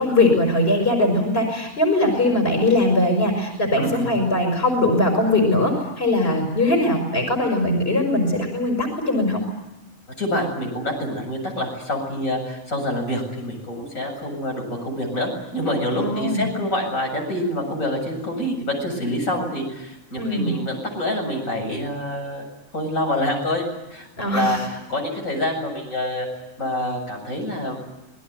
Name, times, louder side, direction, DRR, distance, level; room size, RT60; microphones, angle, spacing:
voice 1, 0.0-9.4 15.9-16.4 20.2-20.6 24.2-24.7, left 1 dB, 45° left, 3 dB, 5.5 m, -20 dB
voice 2, 3.8-4.1 10.2-23.6 23.9-26.3 26.6-27.8, left 1 dB, 85° left, 1 dB, 8.1 m, -26 dB
26.5 x 20.5 x 9.3 m, 0.98 s
omnidirectional pair, 1.4 m